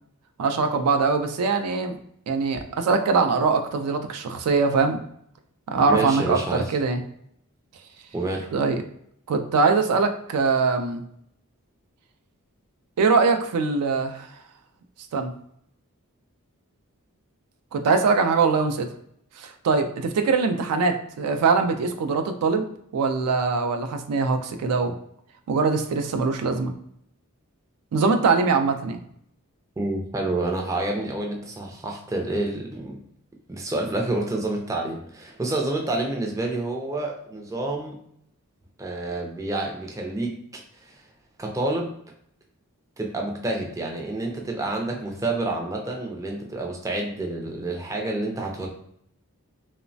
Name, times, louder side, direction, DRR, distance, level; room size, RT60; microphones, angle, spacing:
voice 1, 0.4-2.0 2.3-5.0 5.7-7.0 8.5-8.8 9.3-11.0 13.0-14.3 15.1-15.3 17.7-18.9 19.4-22.6 22.9-24.9 25.5-26.7 27.9-29.0, right 4 dB, 85° right, 7 dB, 0.4 m, -22 dB
voice 2, 5.9-6.6 8.1-8.5 29.8-33.0 33.5-37.9 38.8-40.6 41.4-41.9 43.0-48.7, right 2 dB, 15° right, 0 dB, 0.4 m, -28 dB
3.0 x 2.0 x 2.6 m, 0.69 s
head